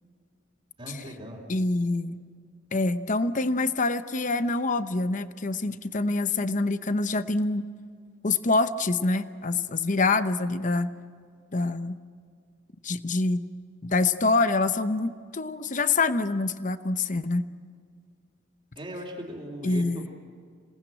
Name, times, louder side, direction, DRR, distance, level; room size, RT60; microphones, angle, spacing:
voice 1, 0.8-1.4 18.7-20.1, equal, 30° right, -3 dB, 3.1 m, -38 dB
voice 2, 1.5-2.2 2.7-7.6 8.2-10.9 11.5-12.0 12.8-13.5 13.8-17.5 19.6-20.1, left 3 dB, 40° left, 12 dB, 0.8 m, -26 dB
27.5 x 19.0 x 8.9 m, 2.1 s
head